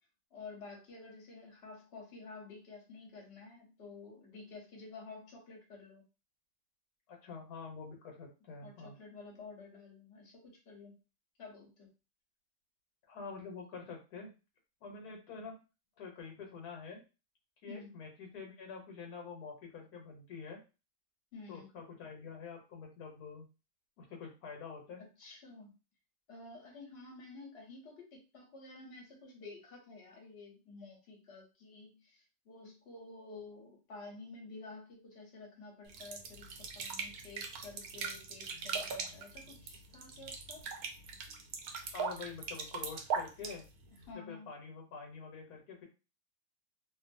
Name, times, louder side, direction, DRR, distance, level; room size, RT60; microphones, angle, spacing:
voice 1, 0.3-6.0 8.6-11.0 11.4-11.9 17.7-17.9 21.3-21.7 25.2-25.7 26.3-40.6 44.1-44.5, left 3 dB, 45° left, -1 dB, 1.0 m, -51 dB
voice 2, 7.1-8.9 13.1-14.3 14.8-15.6 16.0-17.0 17.6-20.6 21.5-23.5 24.0-25.0 41.9-43.7 44.1-45.9, left 5 dB, 75° left, 1 dB, 1.3 m, -47 dB
sound 1, 35.9-44.1, right 5 dB, 70° right, 1.0 m, -40 dB
2.6 x 2.5 x 2.5 m, 0.31 s
omnidirectional pair, 1.7 m